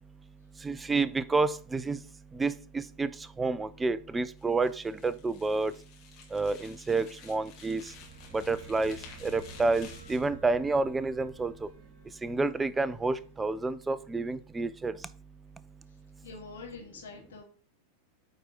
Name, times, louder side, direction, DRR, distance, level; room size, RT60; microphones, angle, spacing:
voice 1, 0.6-2.0 2.4-3.1 3.4-4.7 5.0-5.7 6.3-7.8 8.3-9.0 9.2-11.5 12.2-14.9, right 3 dB, 10° right, 17 dB, 0.5 m, -29 dB
sound 1, 4.4-10.3, left 7 dB, 35° left, 2.0 m, -53 dB
sound 2, 7.5-14.1, right 5 dB, 55° right, 2.0 m, -52 dB
voice 2, 16.2-17.4, left 4 dB, 65° left, 0 dB, 2.5 m, -45 dB
8.7 x 4.3 x 3.9 m, 0.40 s
figure-of-eight pair, 90°, 0 cm